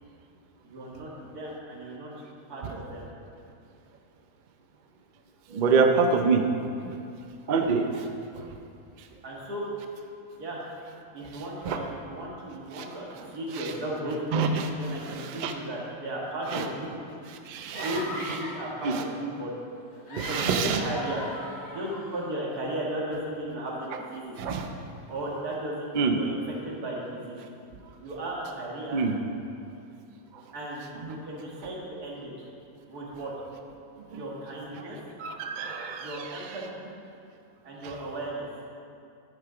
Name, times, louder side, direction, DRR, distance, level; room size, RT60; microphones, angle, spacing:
voice 1, 0.6-2.1 2.5-3.1 9.2-9.7 10.4-10.6 11.1-14.2 14.8-16.9 17.8-19.5 20.1-21.2 21.7-24.4 25.1-26.4 26.6-27.4 28.0-29.0 30.5-32.3 32.9-33.3 34.1-35.0 36.0-36.9 37.6-38.5, right 1 dB, 65° right, -4 dB, 2.2 m, -35 dB
voice 2, 5.5-6.5 6.8-7.0 7.5-8.1 8.3-8.6 9.0-9.1 11.2-11.8 12.7-12.8 13.5-13.7 14.3-15.5 16.5-16.7 17.3-18.0 18.8-19.0 20.2-20.8 24.4-24.7 25.9-26.2 28.9-29.2 30.3-30.4 31.0-31.2 34.1-34.2 35.2-36.5 37.8-37.9, right 4 dB, 85° right, 5 dB, 0.4 m, -27 dB
sound 1, 17.7-18.7 19.9-22.3, left 1 dB, 90° left, 2.4 m, -39 dB
10.5 x 6.6 x 5.0 m, 2.5 s
omnidirectional pair, 1.8 m